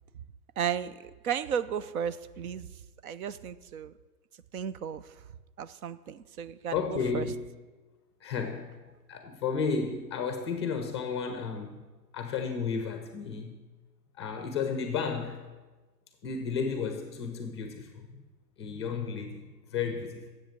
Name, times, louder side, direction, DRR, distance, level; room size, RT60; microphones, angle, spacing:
voice 1, 0.6-2.7 3.0-3.9 4.5-5.1 5.6-7.3, right 8 dB, 65° right, 0.6 m, -34 dB
voice 2, 6.7-7.6 8.2-8.8 9.1-11.9 12.1-13.6 14.1-15.5 16.2-18.2 18.6-20.3, left 5 dB, 20° left, 0.5 m, -33 dB
10.0 x 7.8 x 7.6 m
hypercardioid pair, 165°, 48 cm